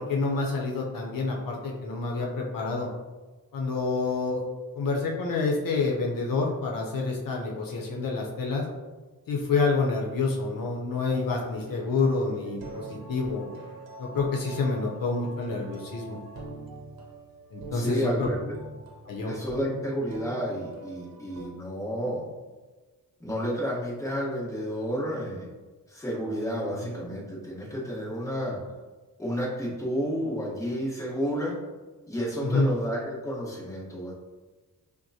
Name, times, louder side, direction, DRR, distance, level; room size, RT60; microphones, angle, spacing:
voice 1, 0.0-2.9 3.5-4.4 4.7-8.6 9.3-13.4 14.0-16.2 17.5-18.3 19.1-19.3 26.8-26.9 32.4-32.7, left 3 dB, 70° left, -1 dB, 0.7 m, -28 dB
sound 1, 11.1-21.5, right 2 dB, 80° right, 0.7 m, -43 dB
voice 2, 17.7-18.4 19.2-22.3 23.2-25.5 25.9-28.6 29.2-31.6 32.1-34.1, equal, 10° left, -6 dB, 1.1 m, -31 dB
5.9 x 2.1 x 2.7 m, 1.3 s
wide cardioid pair, 115°, 35 cm